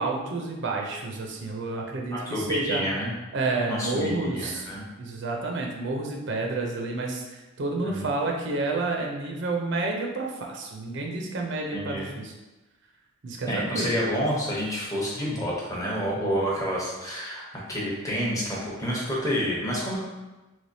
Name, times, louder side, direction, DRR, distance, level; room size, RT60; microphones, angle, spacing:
voice 1, 0.0-2.8 3.3-4.7 5.0-12.3 13.2-14.0, right 3 dB, 60° right, 0 dB, 0.5 m, -30 dB
voice 2, 2.1-3.1 3.7-4.8 7.8-8.0 11.7-12.0 13.5-17.4 17.7-20.0, equal, 15° left, -5 dB, 0.8 m, -29 dB
3.3 x 3.1 x 2.7 m, 1.1 s
head